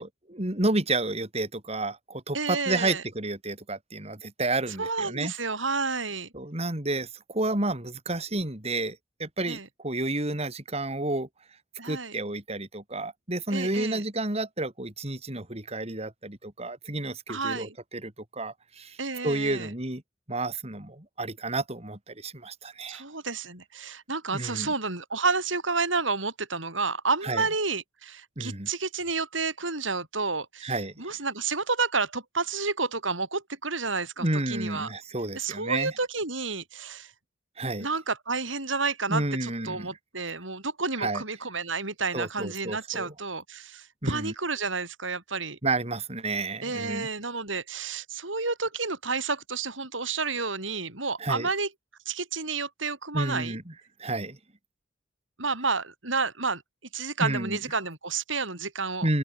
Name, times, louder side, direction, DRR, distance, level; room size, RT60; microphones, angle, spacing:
voice 1, 0.0-5.3 6.3-11.3 11.8-19.0 19.2-20.0 20.3-23.0 24.3-24.7 27.2-27.5 28.4-28.7 30.6-30.9 34.2-35.9 37.6-37.9 39.1-39.9 41.0-41.2 42.1-43.1 44.0-44.3 45.6-47.1 51.2-51.5 53.1-53.6 54.0-54.4 57.2-57.6 59.0-59.2, right 2 dB, 35° right, 3.7 m, -30 dB
voice 2, 2.3-3.0 4.8-6.3 9.4-9.7 11.8-12.2 13.5-14.0 17.3-17.7 19.0-19.7 22.9-34.9 35.3-37.1 37.8-45.6 46.6-51.7 52.0-53.6 55.4-56.6 56.9-59.1, right 4 dB, 90° right, 8.0 m, -30 dB
open air
head